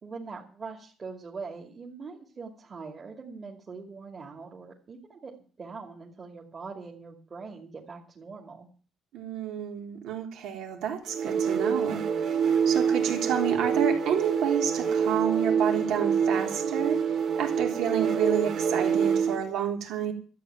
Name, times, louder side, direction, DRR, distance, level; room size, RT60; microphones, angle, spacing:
voice 1, 0.0-8.7, right 4 dB, 35° right, 0 dB, 2.5 m, -42 dB
voice 2, 9.1-12.3 12.7-17.0 17.4-20.1, right 8 dB, 85° right, 3 dB, 3.5 m, -30 dB
sound 1, 11.1-19.5, right 7 dB, 60° right, 2.2 m, -26 dB
13.0 x 8.5 x 9.4 m, 0.41 s
cardioid pair, 120°, 0 cm